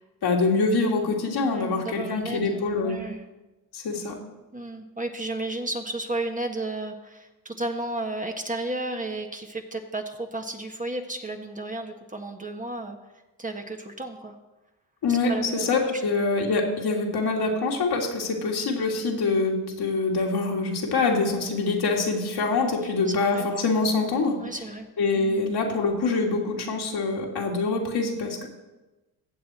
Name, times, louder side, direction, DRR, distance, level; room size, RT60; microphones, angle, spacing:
voice 1, 0.2-3.0 3.7-4.2 15.0-24.4 25.0-28.5, left 3 dB, 65° left, 0 dB, 2.4 m, -25 dB
voice 2, 1.5-3.2 4.5-13.0 13.4-14.4 15.1-16.0 23.1-23.5 24.4-24.9 25.1-25.5, right 2 dB, 20° right, 4 dB, 1.5 m, -33 dB
15.5 x 7.4 x 4.3 m, 1.1 s
supercardioid pair, 55°, 41 cm